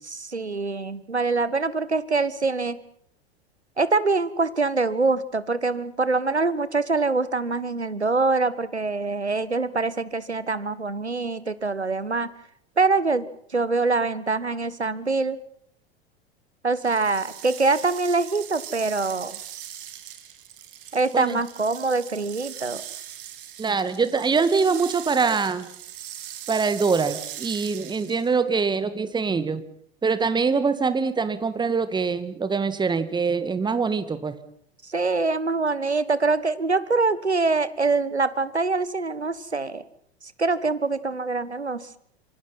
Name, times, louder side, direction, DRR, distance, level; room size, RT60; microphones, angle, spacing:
voice 1, 0.0-2.8 3.8-12.3 12.8-13.2 13.5-15.4 16.6-19.4 20.9-22.8 34.8-39.8 40.4-42.0, right 3 dB, 85° right, 16 dB, 1.4 m, -24 dB
sound 1, 16.7-28.4, right 11 dB, 55° right, 3.6 m, -40 dB
voice 2, 23.6-25.7 26.5-29.6 30.0-34.4, right 5 dB, 15° right, 12 dB, 1.9 m, -24 dB
26.5 x 24.5 x 5.8 m, 0.64 s
figure-of-eight pair, 90°, 32 cm